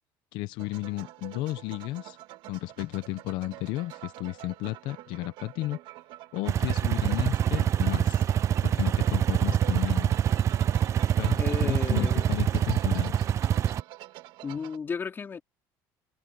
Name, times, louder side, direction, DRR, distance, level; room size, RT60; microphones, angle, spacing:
voice 1, 0.3-2.2 2.5-5.8 6.3-8.3 8.6-10.1 11.2-13.2, left 18 dB, 75° left, 1.0 m, -33 dB
sound 1, 0.6-14.8, right 16 dB, 75° right, 2.1 m, -46 dB
sound 2, 6.5-13.8, right 10 dB, 40° right, 0.6 m, -25 dB
voice 2, 11.4-12.3 14.4-15.4, left 5 dB, 30° left, 3.6 m, -33 dB
cardioid pair, 125°, 8 cm